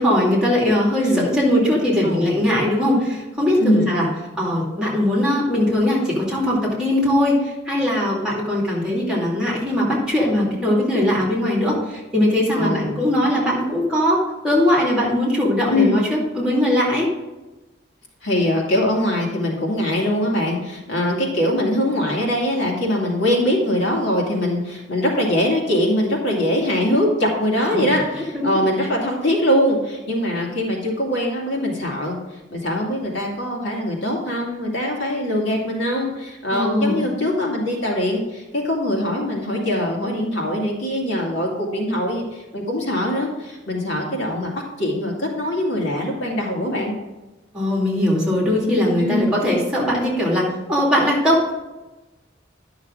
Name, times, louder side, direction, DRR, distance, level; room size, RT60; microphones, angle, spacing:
voice 1, 0.0-4.1 4.4-17.1 27.6-28.5 36.5-37.0 47.5-51.5, left 1 dB, 5° right, -4 dB, 2.4 m, -20 dB
voice 2, 3.6-3.9 12.5-12.9 13.2-13.3 15.7-16.0 18.2-32.2 32.5-46.9 49.0-49.3, left 1 dB, 70° left, -2 dB, 2.3 m, -22 dB
11.0 x 6.3 x 3.7 m, 1.1 s
head